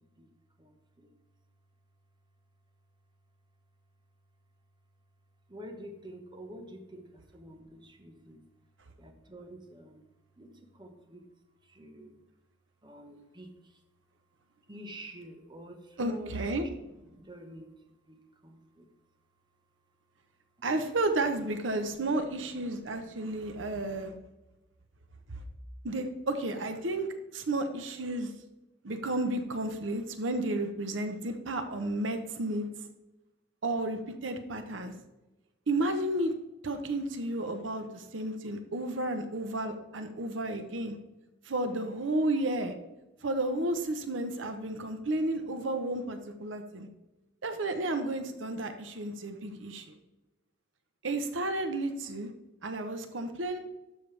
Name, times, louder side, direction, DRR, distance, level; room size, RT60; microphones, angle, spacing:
voice 1, 5.5-8.4 9.0-10.0 10.4-11.2 11.6-12.2 12.8-13.5 14.7-16.3 17.1-17.7 18.1-18.9, equal, 25° right, 4 dB, 1.2 m, -47 dB
voice 2, 16.0-16.7 20.6-24.1 25.3-25.4 25.8-28.3 28.8-32.7 33.6-34.9 35.7-36.3 36.6-41.0 41.4-42.7 43.2-46.9 47.4-50.0 51.0-52.3 52.6-53.6, right 2 dB, 75° right, 8 dB, 0.9 m, -32 dB
12.5 x 6.6 x 3.3 m, 1.0 s
head